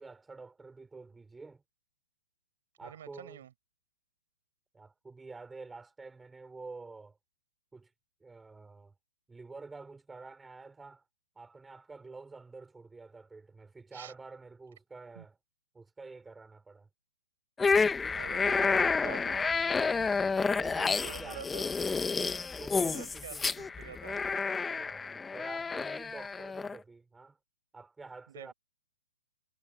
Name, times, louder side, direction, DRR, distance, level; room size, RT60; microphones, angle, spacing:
voice 1, 0.0-1.6 2.8-3.4 4.7-7.2 7.7-7.9 8.2-8.9 9.3-11.1 11.4-15.4 15.7-16.9 18.4-19.1 20.4-21.8 22.6-23.5 24.7-27.4 27.7-28.5, right 3 dB, 10° right, 4.0 m, -48 dB
voice 2, 2.8-3.5 13.9-14.1 15.2-15.3 18.1-19.8 20.7-21.7 22.8-24.2 28.3-28.5, right 10 dB, 65° right, 7.2 m, -47 dB
sound 1, 17.6-26.8, left 4 dB, 10° left, 1.1 m, -30 dB
hypercardioid pair, 135°, 0 cm